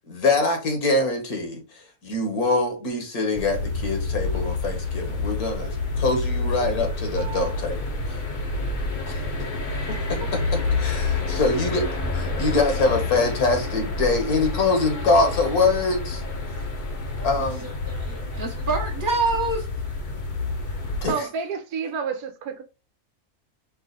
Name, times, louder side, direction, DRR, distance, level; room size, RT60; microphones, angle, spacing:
voice 1, 0.1-1.6 2.0-7.8 9.1-9.2 9.9-11.9 12.1-16.2 17.2-17.7 21.0-21.1, left 3 dB, 70° left, 1.8 m, -24 dB
sound 1, 3.3-21.1, left 3 dB, 40° left, 0.8 m, -28 dB
voice 2, 7.2-7.6 10.2-10.3 17.2-19.8, right 3 dB, 40° right, 1.0 m, -28 dB
voice 3, 21.0-22.6, right 6 dB, 75° right, 1.2 m, -29 dB
5.4 x 2.5 x 3.9 m
omnidirectional pair, 1.6 m